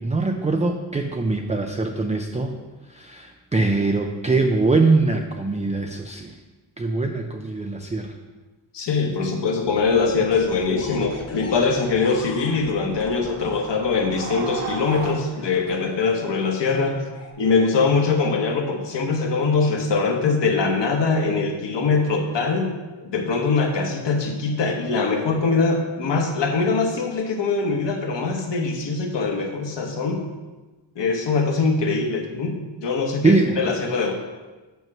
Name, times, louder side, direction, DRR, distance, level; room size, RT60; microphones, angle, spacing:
voice 1, 0.0-2.5 2.9-6.3 6.8-8.1 33.2-33.6, right 3 dB, 15° right, 4 dB, 0.3 m, -22 dB
voice 2, 8.7-17.0 17.4-22.7 23.0-30.2 31.0-34.1, left 4 dB, 60° left, 3 dB, 1.3 m, -22 dB
sound 1, 9.7-15.1, right 4 dB, 35° right, 1.2 m, -37 dB
sound 2, 10.3-13.6 14.7-16.3 17.0-17.3, left 3 dB, 30° left, 0.9 m, -41 dB
7.5 x 5.4 x 5.9 m, 1.2 s
wide cardioid pair, 165°, 48 cm